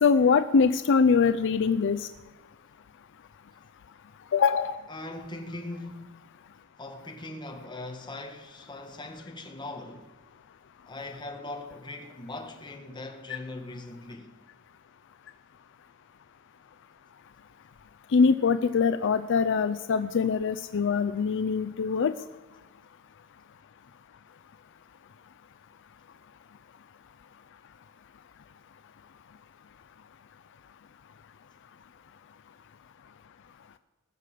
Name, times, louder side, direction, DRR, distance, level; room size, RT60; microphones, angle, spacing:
voice 1, 0.0-2.1 4.3-4.8 13.3-13.4 18.1-22.1, left 5 dB, 60° left, 0.5 m, -23 dB
voice 2, 4.9-6.2 6.8-10.1 10.9-14.3, left 2 dB, 20° left, 1.6 m, -40 dB
19.5 x 6.6 x 7.6 m
head